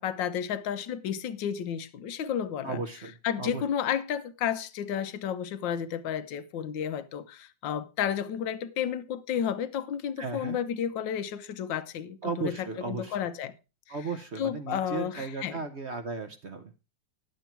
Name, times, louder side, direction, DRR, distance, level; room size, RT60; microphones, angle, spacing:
voice 1, 0.0-2.8 3.2-12.5 12.9-13.5 14.4-15.6, left 9 dB, 80° left, 1.5 m, -32 dB
voice 2, 2.6-3.6 10.2-10.6 12.2-13.2 13.9-16.7, right 4 dB, 50° right, 0.9 m, -35 dB
10.5 x 8.1 x 4.4 m
omnidirectional pair, 2.0 m